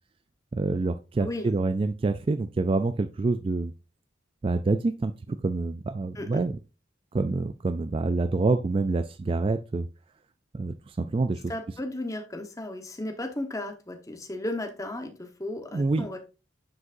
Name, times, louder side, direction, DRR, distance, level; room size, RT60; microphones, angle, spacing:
voice 1, 0.5-3.7 4.4-6.6 7.1-9.9 10.5-11.5 15.7-16.1, right 3 dB, 30° right, 0.3 m, -27 dB
voice 2, 1.2-1.6 6.1-6.4 11.5-16.2, left 1 dB, 15° left, 1.1 m, -35 dB
9.6 x 5.2 x 2.6 m
head